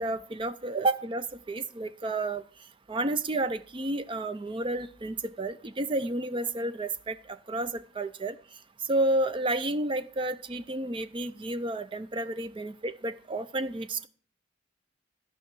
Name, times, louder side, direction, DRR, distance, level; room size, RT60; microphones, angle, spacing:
voice 1, 0.0-2.4 2.9-8.4 8.9-14.1, right 2 dB, 25° right, 12 dB, 0.4 m, -31 dB
13.5 x 5.6 x 6.0 m, 0.43 s
head